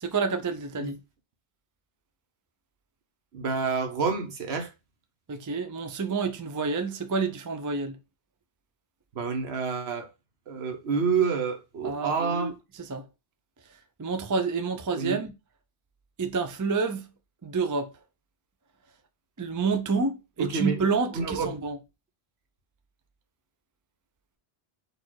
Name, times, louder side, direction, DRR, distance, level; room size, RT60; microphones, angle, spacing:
voice 1, 0.0-1.0 5.3-8.0 11.8-12.5 12.8-13.1 14.0-15.3 16.2-17.0 17.4-17.9 19.4-21.8, right 4 dB, 30° right, 0.4 m, -28 dB
voice 2, 3.3-4.7 9.1-10.1 10.5-12.5 15.0-15.2 20.4-21.5, right 5 dB, 70° right, 1.3 m, -28 dB
4.2 x 2.6 x 4.6 m
omnidirectional pair, 1.1 m